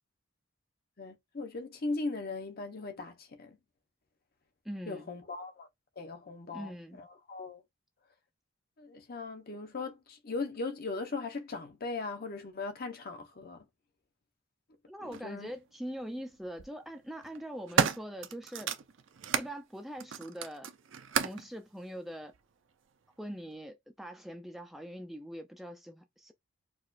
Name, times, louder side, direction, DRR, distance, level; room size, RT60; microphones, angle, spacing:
voice 1, 1.0-3.6 4.9-5.7 6.0-7.6 8.8-13.6 15.0-15.5, left 3 dB, 50° left, 0.8 m, -39 dB
voice 2, 4.6-5.1 6.5-7.0 14.9-18.7 19.4-20.7 21.2-22.3 23.2-26.3, equal, ahead, 0.4 m, -42 dB
sound 1, 15.1-15.2 16.3-16.7 17.2-19.5 20.0-21.5 22.3-22.4, right 7 dB, 65° right, 0.5 m, -32 dB
4.7 x 2.4 x 2.5 m
head